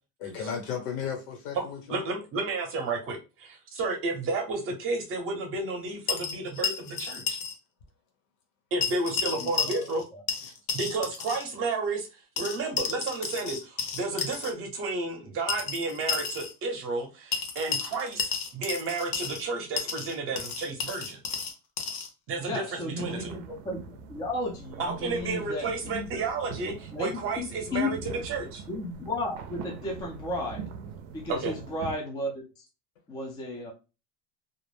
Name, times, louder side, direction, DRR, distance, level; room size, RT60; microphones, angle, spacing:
voice 1, 0.2-2.0 33.5-33.6, left 7 dB, 85° left, 3 dB, 1.2 m, -35 dB
voice 2, 1.5-7.4 8.7-10.0 10.4-12.1 12.4-21.2 22.3-23.3 24.8-28.6 31.4-31.5, right 3 dB, 30° right, 3 dB, 0.7 m, -32 dB
sound 1, 6.1-7.6 7.8-7.9 8.8-10.0 10.3-11.5 12.4-14.5 15.5-16.5 17.3-19.5 19.8-22.1, left 6 dB, 50° left, 0.7 m, -32 dB
voice 3, 9.4-9.8 22.4-26.1 26.6-28.3 28.7-30.7 31.1-32.3 33.1-33.7, left 2 dB, 10° left, -1 dB, 0.4 m, -34 dB
sound 2, 23.0-32.0, right 7 dB, 65° right, 0.5 m, -43 dB
2.4 x 2.0 x 3.1 m, 0.30 s
supercardioid pair, 155°, 41 cm